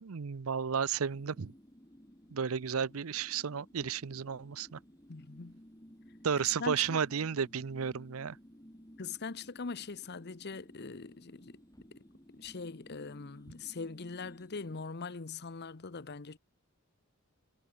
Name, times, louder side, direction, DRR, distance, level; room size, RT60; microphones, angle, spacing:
voice 1, 0.0-1.5 2.3-4.8 6.2-8.4, right 7 dB, 85° right, 0.6 m, -33 dB
sound 1, 1.0-14.8, equal, 20° left, 6.5 m, -57 dB
voice 2, 5.1-5.6 6.6-7.0 9.0-11.6 11.9-16.4, left 4 dB, 50° left, 0.9 m, -42 dB
head